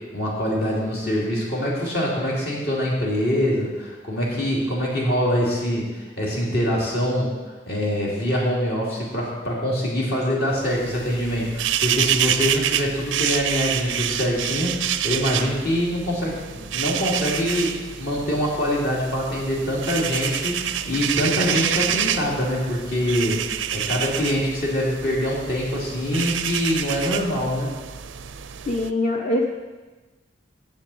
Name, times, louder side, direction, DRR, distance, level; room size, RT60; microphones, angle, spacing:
voice 1, 0.1-7.3 7.7-23.4 23.7-27.7, equal, 55° left, -4 dB, 2.7 m, -24 dB
sound 1, 10.6-28.9, right 10 dB, 90° right, 0.5 m, -28 dB
voice 2, 28.7-29.5, left 2 dB, 40° left, 0 dB, 0.8 m, -22 dB
7.5 x 7.2 x 7.8 m, 1.2 s
head